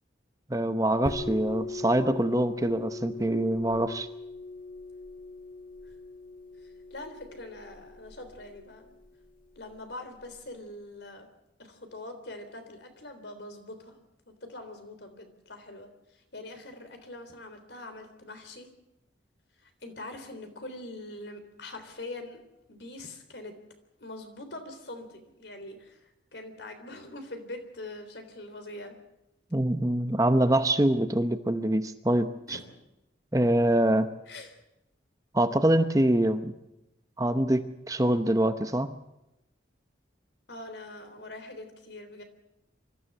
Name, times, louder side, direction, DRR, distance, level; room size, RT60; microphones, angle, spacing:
voice 1, 0.5-4.1 29.5-32.6 33.3-34.1 35.3-36.5 37.2-38.9, right 1 dB, 20° right, 9 dB, 0.8 m, -25 dB
sound 1, 1.1-10.4, left 2 dB, 45° left, 1.7 m, -41 dB
voice 2, 6.6-8.9 9.6-11.3 11.6-18.7 19.6-22.4 22.7-23.5 24.0-29.0 32.5-32.7 34.3-34.6 40.5-42.2, left 2 dB, 70° left, 8 dB, 3.5 m, -43 dB
25.0 x 14.0 x 7.8 m, 0.89 s
head